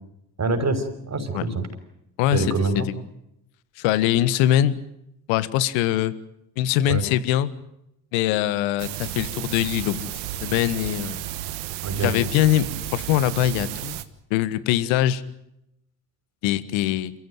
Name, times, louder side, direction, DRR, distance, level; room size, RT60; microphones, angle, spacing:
voice 1, 0.4-1.6 2.3-2.9 6.9-7.0 11.8-12.1, right 3 dB, 35° right, 7 dB, 5.9 m, -25 dB
voice 2, 3.8-4.8 5.3-6.1 6.6-7.5 8.1-10.1 10.4-11.3 12.0-12.7 12.9-14.0 14.3-15.2 16.4-17.1, left 12 dB, 70° left, 15 dB, 1.6 m, -22 dB
sound 1, 8.8-14.0, right 13 dB, 70° right, 1.6 m, -33 dB
28.5 x 16.0 x 9.3 m, 0.81 s
hypercardioid pair, 50°, 49 cm